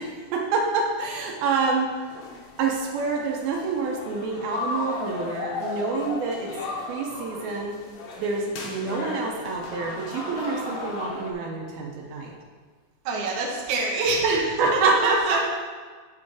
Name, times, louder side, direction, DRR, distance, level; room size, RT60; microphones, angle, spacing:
voice 1, 0.0-2.1 2.6-6.5 6.8-7.8 8.2-12.3 14.2-15.4, right 4 dB, 85° right, 0 dB, 2.7 m, -27 dB
sound 1, 2.1-11.3, left 3 dB, 80° left, 1.4 m, -35 dB
voice 2, 13.1-14.3 14.7-15.4, right 3 dB, 65° right, -1 dB, 2.3 m, -26 dB
8.2 x 5.0 x 4.8 m, 1.5 s
omnidirectional pair, 4.3 m